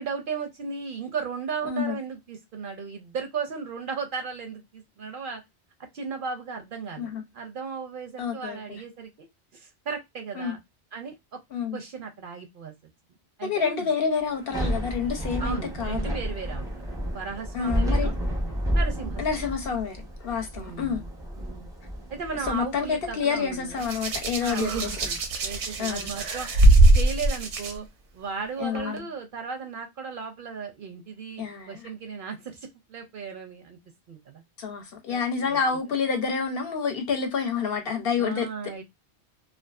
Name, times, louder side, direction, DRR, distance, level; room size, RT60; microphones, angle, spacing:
voice 1, 0.0-5.4 5.9-9.3 9.5-10.6 10.9-11.4 11.7-12.7 13.4-13.9 15.4-18.1 18.7-19.2 20.5-21.1 21.4-21.7 22.1-23.9 24.4-26.5 26.9-27.9 28.1-33.8 34.1-34.4 35.1-35.6 38.2-38.8, right 5 dB, 60° right, 0.6 m, -36 dB
voice 2, 1.6-2.0 7.0-7.2 8.2-8.8 10.3-10.6 11.5-11.8 13.4-16.0 17.5-18.1 19.2-21.0 22.5-24.9 25.8-26.1 28.6-29.1 31.4-31.9 34.6-38.5, left 6 dB, 60° left, 0.8 m, -28 dB
Thunder / Rain, 14.3-27.5, equal, 5° right, 0.5 m, -32 dB
Hands, 23.8-27.7 28.8-29.0, right 2 dB, 85° right, 0.9 m, -21 dB
2.5 x 2.3 x 2.2 m
omnidirectional pair, 1.1 m